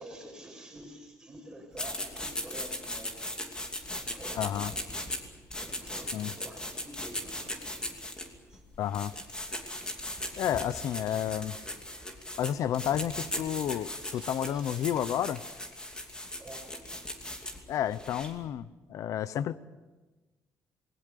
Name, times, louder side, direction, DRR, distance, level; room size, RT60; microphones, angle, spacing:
voice 1, 0.0-3.5 4.1-5.0 5.5-8.1 8.5-8.6 13.9-15.3 16.3-16.6, right 1 dB, 10° right, 1 dB, 5.9 m, -49 dB
sound 1, 1.7-18.4, left 1 dB, 15° left, 2.7 m, -38 dB
voice 2, 4.4-4.7 6.1-6.3 8.8-9.1 10.4-11.6 12.4-15.4 17.7-19.6, left 10 dB, 65° left, 16 dB, 0.8 m, -31 dB
27.5 x 20.5 x 6.7 m, 1.2 s
cardioid pair, 145°, 6 cm